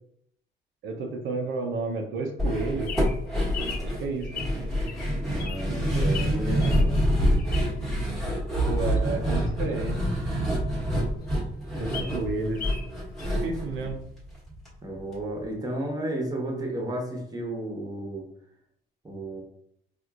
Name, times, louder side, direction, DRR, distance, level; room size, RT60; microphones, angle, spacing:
voice 1, 0.8-3.0 3.8-4.4 5.9-6.1 8.7-10.0 11.8-12.7 13.3-14.0, right 3 dB, 75° right, 1 dB, 0.6 m, -31 dB
sound 1, 2.4-14.7 15.0-15.1 15.4-15.5, equal, ahead, 1.1 m, -27 dB
Bird vocalization bird call bird song, 2.5-7.9 8.4-10.5 10.9-11.0 11.2-11.3 11.7-12.9 13.2-13.3, left 7 dB, 50° left, 0.7 m, -40 dB
voice 2, 5.2-7.0 11.7-12.2 14.8-18.3 19.0-19.4, right 1 dB, 20° right, 1 dB, 1.0 m, -33 dB
4.4 x 2.5 x 2.4 m, 0.71 s
cardioid pair, 90°, 20 cm